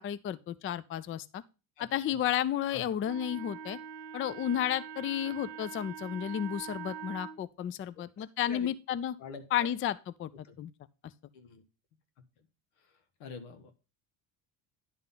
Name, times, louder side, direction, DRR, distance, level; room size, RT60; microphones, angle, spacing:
voice 1, 0.0-1.4 1.8-3.8 4.1-9.1 9.5-10.3 10.6-10.7, left 10 dB, 30° left, 0.4 m, -32 dB
voice 2, 1.8-2.2 2.7-2.9 8.2-8.7 9.2-9.4 10.4-10.6 11.3-11.6 13.2-13.7, left 5 dB, 85° left, 1.5 m, -45 dB
Wind instrument woodwind instrument, 3.0-7.4, right 8 dB, 60° right, 0.9 m, -43 dB
10.5 x 3.8 x 5.6 m
supercardioid pair, 90°, 47 cm